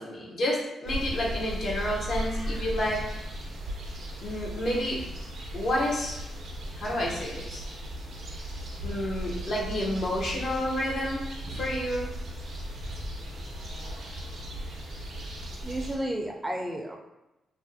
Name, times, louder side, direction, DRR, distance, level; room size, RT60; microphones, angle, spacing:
voice 1, 0.0-3.2 4.2-5.0 5.5-6.2 6.7-7.6 8.8-11.2 11.5-12.1, left 1 dB, 65° left, -3 dB, 0.7 m, -30 dB
sound 1, 0.8-16.0, equal, 75° right, 0.5 m, -37 dB
voice 2, 15.6-17.0, right 1 dB, 15° right, 0 dB, 0.4 m, -32 dB
2.4 x 2.0 x 2.6 m, 0.96 s
supercardioid pair, 60°, 0 cm